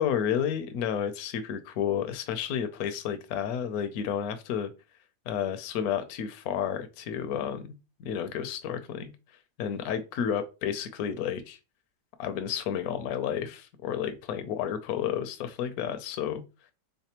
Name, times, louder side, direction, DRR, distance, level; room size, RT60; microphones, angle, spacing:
voice 1, 0.0-4.7 5.3-9.1 9.6-11.6 12.2-16.4, left 8 dB, 70° left, 1.0 m, -31 dB
3.5 x 3.3 x 2.9 m
omnidirectional pair, 1.8 m